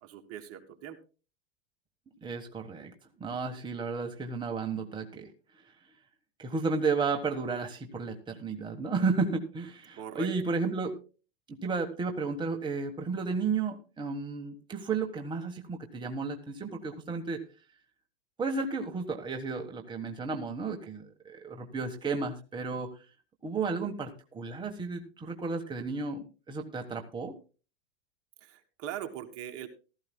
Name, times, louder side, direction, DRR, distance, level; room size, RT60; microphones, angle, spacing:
voice 1, 0.0-1.0 10.0-10.3 28.4-29.7, right 10 dB, 40° right, 7 dB, 1.7 m, -41 dB
voice 2, 2.2-2.9 3.2-5.3 6.4-10.9 11.5-17.4 18.4-22.9 23.4-27.3, right 4 dB, 15° right, 4 dB, 1.3 m, -33 dB
16.0 x 13.5 x 2.2 m, 0.34 s
hypercardioid pair, 120°, 36 cm